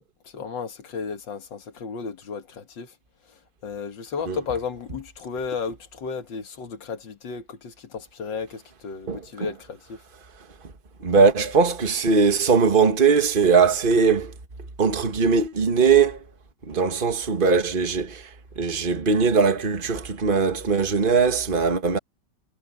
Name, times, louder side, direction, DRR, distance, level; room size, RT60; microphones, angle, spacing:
voice 1, 0.3-2.9 3.6-10.0, left 5 dB, 85° left, 2.4 m, -33 dB
voice 2, 9.1-9.5 11.0-14.3 14.8-16.2 16.6-18.3 18.6-22.0, right 5 dB, 30° right, 1.8 m, -20 dB
omnidirectional pair, 1.9 m